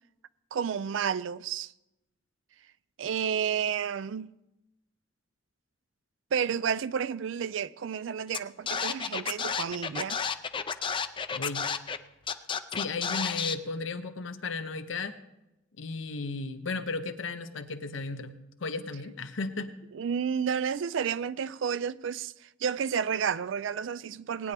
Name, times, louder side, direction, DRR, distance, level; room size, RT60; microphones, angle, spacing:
voice 1, 0.5-1.7 3.0-4.3 6.3-10.2 19.9-24.5, right 7 dB, 75° right, 0.4 m, -31 dB
Scratching (performance technique), 8.3-8.4 8.7-12.0 12.3-13.5, left 6 dB, 25° left, 0.4 m, -31 dB
voice 2, 11.3-11.7 12.7-15.2 15.8-19.8, left 3 dB, 85° left, 0.9 m, -35 dB
19.0 x 9.5 x 3.4 m
head